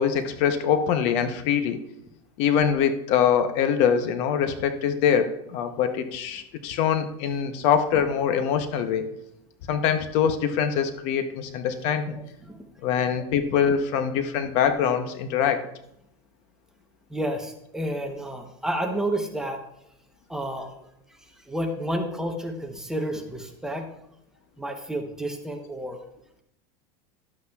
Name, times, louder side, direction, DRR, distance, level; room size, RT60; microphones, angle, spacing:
voice 1, 0.0-1.8 2.4-9.1 9.7-12.2 12.8-15.6, left 8 dB, 55° left, 9 dB, 0.8 m, -23 dB
voice 2, 17.1-19.6 20.3-20.7 21.1-21.2 21.5-23.9 24.6-26.0, right 1 dB, 5° right, 3 dB, 0.8 m, -30 dB
11.5 x 8.1 x 2.3 m, 0.81 s
supercardioid pair, 145°, 13 cm